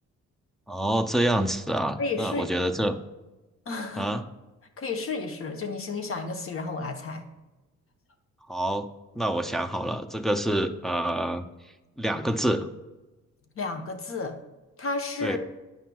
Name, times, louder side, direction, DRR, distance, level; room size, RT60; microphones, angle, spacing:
voice 1, 0.7-3.0 4.0-4.2 8.5-8.9 9.2-11.4 12.0-12.7 15.2-15.4, right 1 dB, ahead, 5 dB, 0.4 m, -27 dB
voice 2, 2.0-2.5 3.7-4.1 4.8-7.2 13.6-14.4 14.8-15.4, left 3 dB, 45° left, 6 dB, 1.0 m, -32 dB
9.3 x 5.7 x 2.3 m, 1.1 s
cardioid pair, 90°, 30 cm